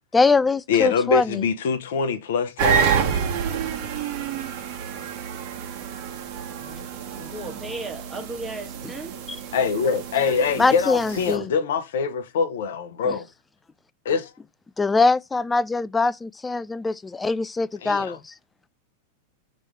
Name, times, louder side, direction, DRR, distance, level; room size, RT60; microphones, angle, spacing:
voice 1, 0.1-1.4 6.6-6.8 7.2-7.3 9.3-9.4 10.6-11.5 13.0-13.2 14.8-18.3, left 3 dB, 10° left, 0.3 m, -23 dB
voice 2, 0.7-3.2 9.5-13.3 14.0-14.3 17.8-18.2, left 5 dB, 55° left, 0.9 m, -24 dB
sound 1, 2.6-11.4, right 8 dB, 45° right, 1.2 m, -28 dB
voice 3, 7.3-9.2 10.3-10.7, right 2 dB, 10° right, 1.5 m, -35 dB
6.0 x 3.2 x 5.3 m
figure-of-eight pair, 90°, 0 cm